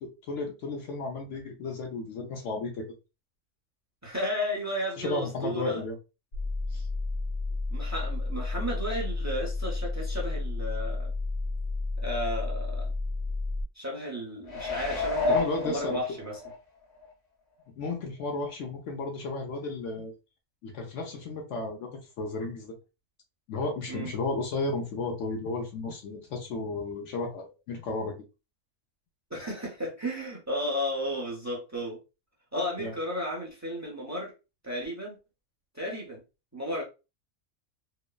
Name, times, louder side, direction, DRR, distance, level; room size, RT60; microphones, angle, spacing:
voice 1, 0.3-2.9 5.0-5.9 6.7-6.9 15.3-16.0 17.8-20.1 20.6-22.7 23.5-28.1 32.8-32.9, left 3 dB, 70° left, 0.9 m, -33 dB
voice 2, 4.0-5.8 7.7-11.1 12.0-12.9 13.7-16.4 23.9-24.1 29.3-32.0 32.5-34.3 34.6-35.2 35.7-36.2 36.5-36.8, equal, 20° right, 0.5 m, -33 dB
sound 1, 6.3-13.6, left 3 dB, 85° left, 1.4 m, -31 dB
sound 2, 14.5-16.5 17.0-17.1, left 3 dB, 40° left, 0.8 m, -29 dB
3.0 x 2.0 x 2.2 m
omnidirectional pair, 1.4 m